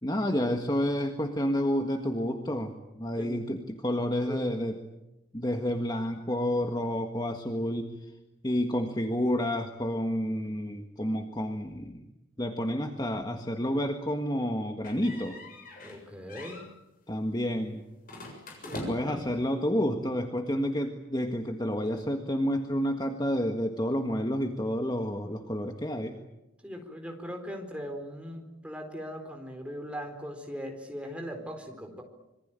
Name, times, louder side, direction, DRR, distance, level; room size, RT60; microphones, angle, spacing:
voice 1, 0.0-4.7 5.3-8.1 8.4-12.1 12.4-15.4 17.1-17.8 18.9-26.1, equal, 20° left, 5 dB, 1.6 m, -30 dB
sound 1, 14.8-16.0 16.3-16.7 18.1-19.3, left 1 dB, 40° left, 7.4 m, -41 dB
voice 2, 15.8-16.6 18.6-19.3 26.6-32.0, equal, 5° right, 4 dB, 4.2 m, -39 dB
26.0 x 23.5 x 9.0 m, 0.94 s
head